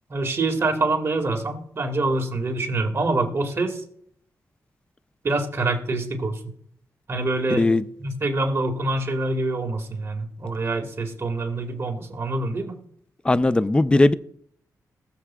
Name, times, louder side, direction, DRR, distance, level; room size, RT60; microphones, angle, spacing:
voice 1, 0.1-3.8 5.2-6.4 7.1-7.7 8.0-12.8, right 2 dB, 40° right, 1.8 m, -25 dB
voice 2, 7.5-7.8 13.2-14.1, left 2 dB, 15° left, 0.4 m, -18 dB
19.5 x 7.1 x 2.3 m
cardioid pair, 100°, 6 cm